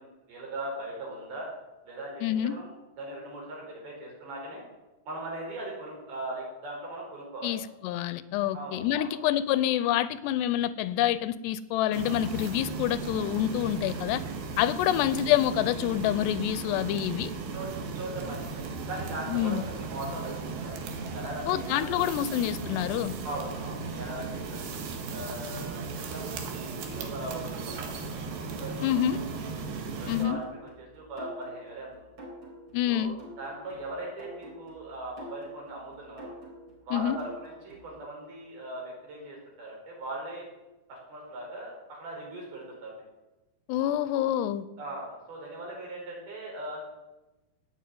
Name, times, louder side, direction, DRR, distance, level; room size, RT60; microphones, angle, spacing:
voice 1, 0.0-1.5 1.8-2.7 3.0-4.7 5.1-7.5 8.5-9.2 14.9-15.0 17.5-17.7 17.9-20.7 21.1-22.0 23.2-24.8 25.1-25.8 26.1-29.5 30.0-30.4 30.8-31.9 32.9-36.3 36.9-40.5 40.9-43.0 44.8-46.9, right 1 dB, 60° right, -2 dB, 6.8 m, -39 dB
voice 2, 2.2-2.6 7.4-14.2 14.6-17.3 19.3-19.6 21.5-23.2 28.8-29.2 30.1-30.4 32.7-33.1 36.9-37.2 43.7-44.7, left 12 dB, 85° left, 15 dB, 2.8 m, -27 dB
sound 1, 11.9-30.3, right 4 dB, 80° right, 4.0 m, -36 dB
sound 2, 30.2-38.0, equal, 35° right, 5.4 m, -47 dB
16.5 x 7.3 x 9.3 m, 1.0 s
omnidirectional pair, 4.8 m